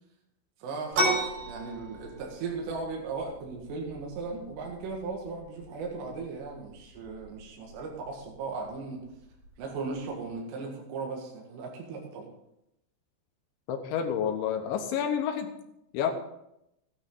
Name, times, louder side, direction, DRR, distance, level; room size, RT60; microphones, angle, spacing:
voice 1, 0.6-9.1 9.6-12.3, right 4 dB, 65° right, 0 dB, 3.6 m, -37 dB
sound 1, 0.9-10.3, right 1 dB, 50° right, 6.2 m, -37 dB
voice 2, 13.7-15.5 15.9-16.1, left 8 dB, 75° left, 4 dB, 3.1 m, -29 dB
16.5 x 9.9 x 3.9 m, 0.83 s
omnidirectional pair, 5.7 m